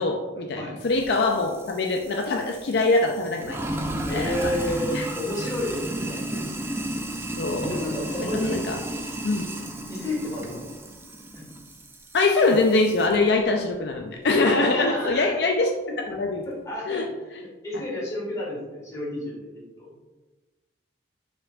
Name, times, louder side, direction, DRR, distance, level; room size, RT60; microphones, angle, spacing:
voice 1, 0.0-3.6 4.1-4.5 4.9-5.1 7.4-7.7 8.2-8.8 9.2-9.4 12.1-15.7 16.1-16.4 16.9-17.0 17.7-17.8, left 3 dB, 60° left, 2 dB, 0.4 m, -23 dB
Sink (filling or washing), 0.9-13.2, right 1 dB, 15° right, 0.4 m, -34 dB
voice 2, 4.0-6.2 7.6-8.6 9.9-10.7 11.3-11.4 14.4-15.3 16.4-17.1 17.4-19.9, left 1 dB, 20° left, -5 dB, 1.4 m, -31 dB
5.1 x 4.4 x 2.3 m, 1.2 s
head